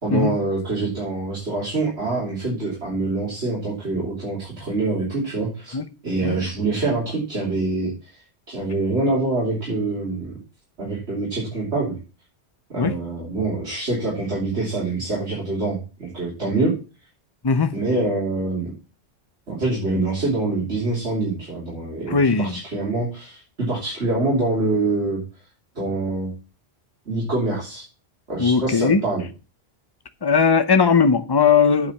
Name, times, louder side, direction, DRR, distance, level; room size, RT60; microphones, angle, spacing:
voice 1, 0.0-5.8 6.0-7.9 8.5-10.4 10.8-12.0 12.7-16.7 17.7-18.7 19.5-25.2 25.7-26.3 27.1-27.8 28.3-29.2, right 2 dB, 90° right, 3.4 m, -25 dB
voice 2, 22.1-22.6 28.4-29.0 30.2-31.9, left 5 dB, 25° left, 0.7 m, -18 dB
8.5 x 5.0 x 7.2 m
omnidirectional pair, 1.1 m